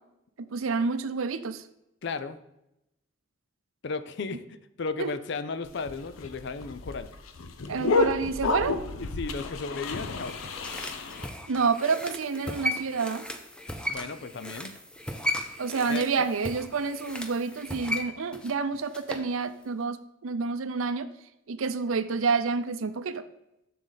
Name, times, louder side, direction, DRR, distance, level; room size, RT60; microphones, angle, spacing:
voice 1, 0.4-1.6 5.0-5.1 7.7-8.8 11.5-13.3 15.6-21.1 21.5-23.2, right 4 dB, 80° right, 12 dB, 0.6 m, -29 dB
voice 2, 2.0-2.4 3.8-7.1 9.0-10.3 13.9-14.7 15.9-16.3, left 4 dB, 55° left, 12 dB, 0.5 m, -35 dB
sound 1, 5.7-11.3, left 3 dB, 85° left, 0.7 m, -30 dB
sound 2, 9.9-19.3 19.6-19.7, left 1 dB, 5° left, 0.6 m, -36 dB
7.3 x 6.7 x 3.9 m, 0.86 s
head